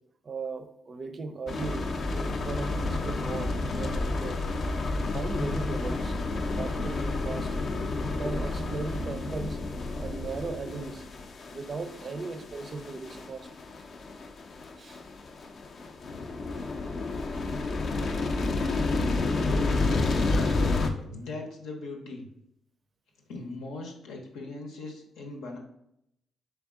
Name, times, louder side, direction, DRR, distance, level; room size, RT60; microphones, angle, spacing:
voice 1, 0.2-4.4 5.0-6.2 6.5-7.5 8.1-9.6 10.0-11.0 11.5-13.5 14.8-15.0, right 4 dB, 40° right, 9 dB, 0.4 m, -37 dB
sound 1, 1.5-20.9, left 3 dB, 50° left, 0.5 m, -30 dB
voice 2, 20.3-20.6 21.1-22.3 23.3-25.6, left 3 dB, 90° left, 1 dB, 0.8 m, -39 dB
3.5 x 3.5 x 3.6 m, 0.78 s
cardioid pair, 90°, 0 cm